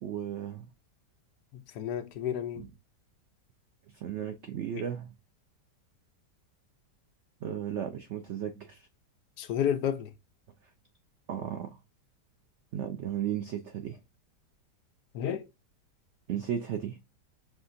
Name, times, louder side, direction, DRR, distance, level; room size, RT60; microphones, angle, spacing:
voice 1, 0.0-0.7 2.6-2.7 3.9-5.1 7.4-8.9 11.3-11.8 12.7-14.0 16.3-17.0, right 9 dB, 85° right, 0.6 m, -35 dB
voice 2, 1.5-2.7 9.4-10.1 15.1-15.4, left 9 dB, 75° left, 1.2 m, -31 dB
5.8 x 2.8 x 2.5 m
omnidirectional pair, 1.9 m